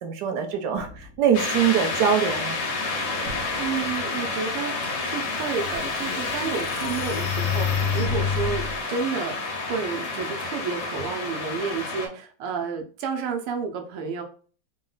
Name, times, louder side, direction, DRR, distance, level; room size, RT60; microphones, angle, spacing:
voice 1, 0.0-2.6, right 8 dB, 65° right, 4 dB, 1.1 m, -23 dB
sound 1, 0.7-1.6 3.2-4.1 5.7-6.4 8.1-8.7, equal, 45° right, 1.2 m, -45 dB
sound 2, 1.3-12.1, left 3 dB, 60° left, 1.3 m, -29 dB
voice 2, 3.6-9.3 9.7-14.2, right 6 dB, 90° right, 4 dB, 1.7 m, -31 dB
sound 3, 5.0-5.1 5.6-8.8, left 7 dB, 85° left, 0.9 m, -28 dB
4.1 x 2.2 x 3.8 m, 0.39 s
omnidirectional pair, 2.4 m